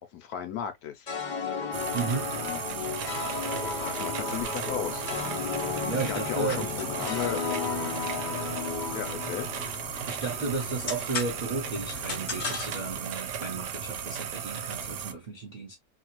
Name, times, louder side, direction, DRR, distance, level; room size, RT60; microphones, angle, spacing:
voice 1, 0.1-1.1 2.3-2.9 3.8-5.1 6.1-7.4 8.9-9.5, left 9 dB, 70° left, 1.0 m, -35 dB
sound 1, 1.1-10.4, left 5 dB, 90° left, 0.4 m, -34 dB
sound 2, 1.7-15.1, right 8 dB, 80° right, 1.2 m, -36 dB
voice 2, 1.9-2.3 5.8-7.2 10.1-15.7, right 4 dB, 55° right, 0.5 m, -34 dB
sound 3, 4.1-13.0, left 5 dB, 55° left, 0.8 m, -40 dB
2.9 x 2.3 x 2.8 m
omnidirectional pair, 1.8 m